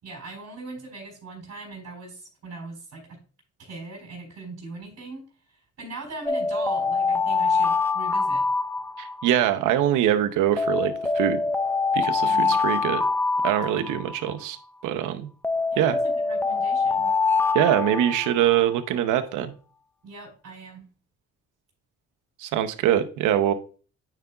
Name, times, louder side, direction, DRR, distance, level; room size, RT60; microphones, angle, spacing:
voice 1, 0.0-3.2 3.6-5.2 5.8-8.4 12.2-12.6 15.7-17.1 20.0-20.8, right 3 dB, 60° right, -1 dB, 3.7 m, -40 dB
sound 1, 6.3-9.4 10.6-14.3 15.4-18.7, left 4 dB, 10° left, 0.4 m, -24 dB
voice 2, 9.0-11.4 11.9-13.0 13.4-14.6 14.8-15.3 15.8-16.0 17.5-19.5 22.4-23.5, right 11 dB, 90° right, 9 dB, 0.7 m, -23 dB
9.2 x 4.9 x 2.3 m, 0.37 s
cardioid pair, 90°, 30 cm